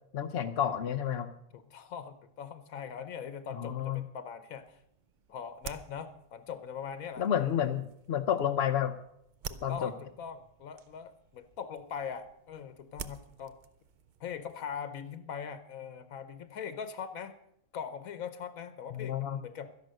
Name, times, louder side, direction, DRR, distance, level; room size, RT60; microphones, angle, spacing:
voice 1, 0.1-1.3 3.6-4.0 7.2-8.9 9.6-9.9 18.9-19.4, left 9 dB, 60° left, 6 dB, 0.8 m, -30 dB
voice 2, 1.5-4.8 5.3-7.3 9.5-13.6 14.2-17.4 17.7-19.7, left 7 dB, 85° left, 11 dB, 1.2 m, -41 dB
sound 1, 4.5-14.8, right 6 dB, 55° right, 0.5 m, -50 dB
12.5 x 10.5 x 6.5 m, 0.75 s
omnidirectional pair, 1.4 m